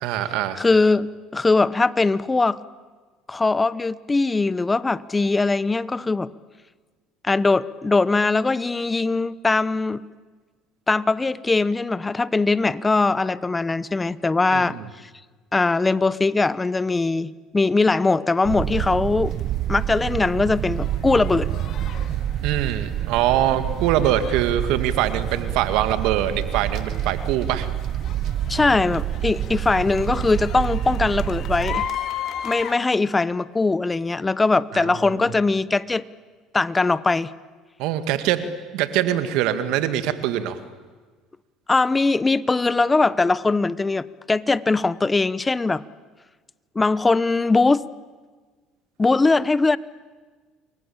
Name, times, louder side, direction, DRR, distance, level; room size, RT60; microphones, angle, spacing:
voice 1, 0.0-0.6 14.5-14.9 22.4-27.7 34.7-35.3 37.8-38.4 38.7-40.6, right 11 dB, 75° right, 9 dB, 2.1 m, -23 dB
voice 2, 0.6-2.6 3.3-6.3 7.2-10.0 10.9-14.8 15.5-19.3 19.7-21.5 28.5-31.8 32.4-36.0 36.5-37.3 41.7-45.8 46.7-47.8 49.0-49.8, left 3 dB, 20° left, 17 dB, 0.9 m, -21 dB
sound 1, 18.4-31.9, right 12 dB, 60° right, 1.0 m, -27 dB
sound 2, 19.3-32.7, left 10 dB, 55° left, 2.1 m, -37 dB
28.5 x 22.5 x 8.8 m, 1.4 s
supercardioid pair, 90°, 0 cm